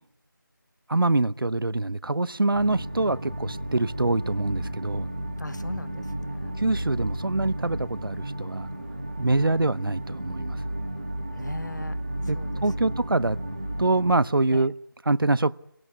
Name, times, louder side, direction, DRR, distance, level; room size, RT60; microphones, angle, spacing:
voice 1, 0.9-5.1 6.6-8.7 9.2-10.6 12.3-13.4 13.8-14.7 15.1-15.5, right 2 dB, 80° right, 0.8 m, -25 dB
sound 1, 2.5-14.2, right 1 dB, 25° right, 1.6 m, -33 dB
voice 2, 5.4-6.5 11.3-12.0 12.3-12.6 14.5-14.7, left 2 dB, 55° left, 1.4 m, -38 dB
24.0 x 17.5 x 9.8 m
figure-of-eight pair, 180°, 12 cm